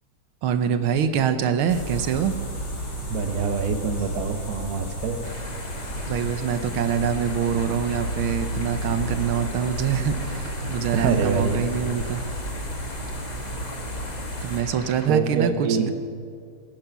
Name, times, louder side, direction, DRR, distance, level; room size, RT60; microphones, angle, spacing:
voice 1, 0.4-2.4 6.1-12.2 14.4-15.9, right 7 dB, 80° right, 10 dB, 1.7 m, -25 dB
sound 1, 1.7-14.6, equal, 90° left, 3.9 m, -32 dB
voice 2, 3.1-5.3 10.9-11.6 14.4-14.5 15.1-15.9, right 6 dB, 55° right, 8 dB, 1.2 m, -25 dB
sound 2, 5.2-15.1, left 2 dB, 25° left, 1.3 m, -40 dB
20.0 x 9.1 x 6.0 m, 2.3 s
omnidirectional pair, 2.3 m